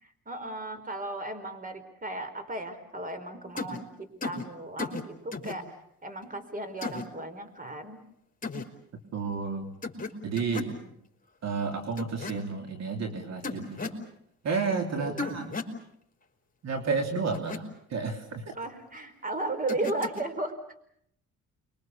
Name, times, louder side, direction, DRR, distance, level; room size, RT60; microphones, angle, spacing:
voice 1, 0.0-5.8 6.0-8.0 10.2-10.9 15.0-15.3 18.5-20.6, right 2 dB, 30° right, 10 dB, 4.4 m, -36 dB
sound 1, 3.6-3.8 4.2-4.4 4.8-5.0 5.3-5.6 6.8-7.0 8.4-8.6 9.8-10.1 10.4-10.7 12.0-12.3 13.4-14.0 15.2-15.7 17.3-17.6 19.7-20.2, left 3 dB, 25° left, 4.3 m, -34 dB
voice 2, 9.1-9.7 10.2-10.8 11.4-14.0 14.4-15.5 16.6-17.6 17.9-18.4, right 4 dB, 60° right, 4 dB, 3.4 m, -31 dB
29.5 x 23.0 x 7.0 m, 0.73 s
cardioid pair, 90°, 30 cm